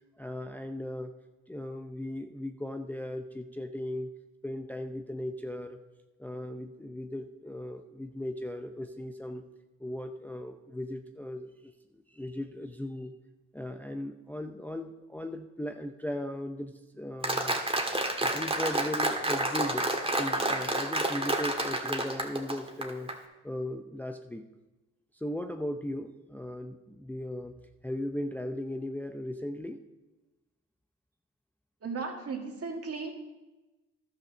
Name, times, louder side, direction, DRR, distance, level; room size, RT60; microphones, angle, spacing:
voice 1, 0.2-1.1 1.5-4.1 4.4-5.8 6.2-9.4 9.8-13.1 13.5-17.6 18.2-19.9 20.2-23.1 23.4-24.5 25.1-27.6 27.8-29.8, left 1 dB, 5° left, 6 dB, 0.6 m, -37 dB
Applause, 17.2-23.2, right 1 dB, 15° right, 1.7 m, -29 dB
voice 2, 31.8-33.2, right 4 dB, 45° right, 2 dB, 2.1 m, -36 dB
12.0 x 5.8 x 6.4 m, 1.1 s
supercardioid pair, 60°, 33 cm